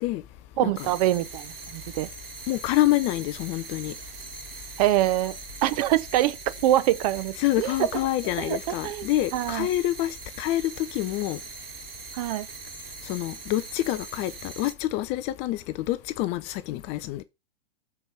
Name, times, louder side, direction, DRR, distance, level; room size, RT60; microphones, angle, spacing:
voice 1, 0.6-2.1 4.8-5.4 5.6-7.7 8.4-8.6 8.8-9.7 12.1-12.5, right 14 dB, 40° right, 0.7 m, -25 dB
sound 1, 0.8-14.7, right 4 dB, 75° right, 1.9 m, -42 dB
voice 2, 2.5-3.9 7.4-11.4 13.0-17.2, left 15 dB, 20° left, 0.4 m, -27 dB
7.1 x 4.6 x 6.0 m
figure-of-eight pair, 110°, 30 cm